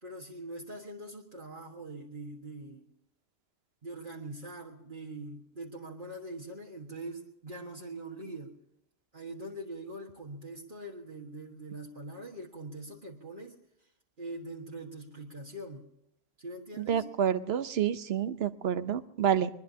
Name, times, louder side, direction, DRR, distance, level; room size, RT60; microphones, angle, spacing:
voice 1, 0.0-2.9 3.8-8.5 9.1-13.6 14.2-15.9 16.4-17.1, right 1 dB, 55° right, -2 dB, 1.7 m, -43 dB
voice 2, 16.8-19.5, right 9 dB, 80° right, 13 dB, 1.0 m, -28 dB
22.5 x 20.5 x 2.8 m, 0.81 s
omnidirectional pair, 1.0 m